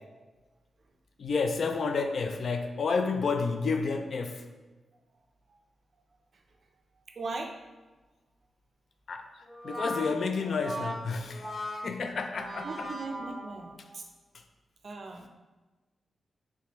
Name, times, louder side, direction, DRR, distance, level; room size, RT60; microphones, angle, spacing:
voice 1, 1.2-4.5 9.1-12.9, left 4 dB, 65° left, 6 dB, 0.3 m, -30 dB
voice 2, 6.9-7.5 12.6-14.1 14.8-15.3, right 3 dB, 60° right, 3 dB, 0.4 m, -39 dB
Brass instrument, 9.4-13.9, equal, 15° left, 1.2 m, -39 dB
3.4 x 3.1 x 2.9 m, 1.2 s
cardioid pair, 85°, 0 cm